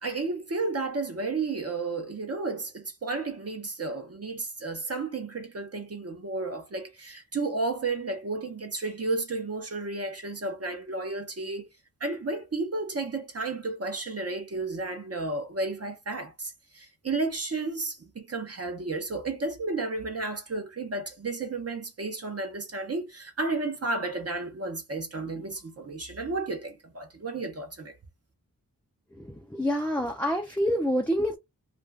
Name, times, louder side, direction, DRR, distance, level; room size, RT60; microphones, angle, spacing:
voice 1, 0.0-11.7 12.0-27.9, right 3 dB, 45° right, 0.7 m, -32 dB
voice 2, 29.1-31.4, equal, 5° left, 0.4 m, -27 dB
2.5 x 2.3 x 3.3 m
wide cardioid pair, 75°, 36 cm